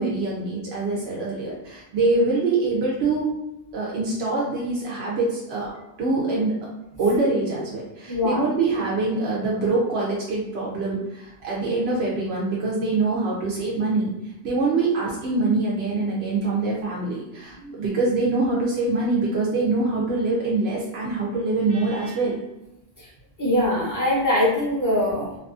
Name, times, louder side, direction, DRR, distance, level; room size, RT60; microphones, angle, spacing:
voice 1, 0.0-3.3 3.7-5.7 6.0-6.5 7.0-14.1 14.4-22.4, right 3 dB, 80° right, -4 dB, 0.8 m, -24 dB
voice 2, 8.1-8.4 17.6-17.8 23.0-23.1 23.4-25.4, left 1 dB, 20° left, -7 dB, 0.8 m, -22 dB
2.6 x 2.3 x 2.5 m, 0.92 s
omnidirectional pair, 1.0 m